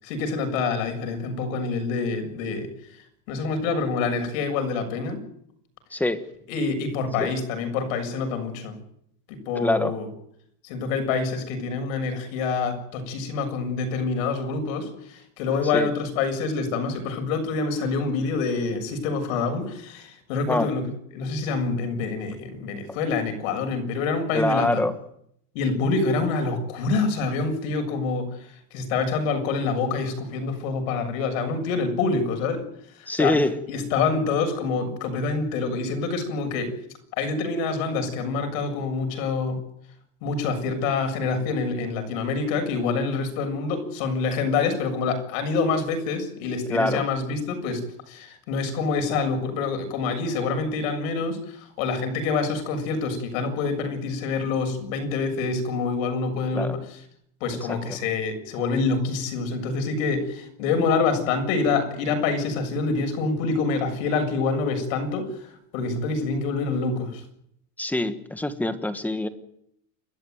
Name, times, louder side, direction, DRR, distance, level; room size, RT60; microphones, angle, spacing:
voice 1, 0.0-2.7 3.3-5.2 6.5-8.8 9.3-10.1 10.6-20.9 21.1-24.8 25.5-32.6 32.9-33.3 33.7-36.7 37.2-39.6 40.2-57.0 57.4-67.2, left 4 dB, 70° left, 6 dB, 7.4 m, -26 dB
voice 2, 5.9-6.2 7.2-7.3 9.5-9.9 15.7-15.9 20.5-20.7 24.3-24.9 33.1-33.6 46.7-47.0 56.5-56.8 57.9-58.0 67.8-69.3, left 1 dB, 5° left, 10 dB, 1.3 m, -24 dB
30.0 x 13.5 x 9.4 m, 0.73 s
cardioid pair, 165°, 41 cm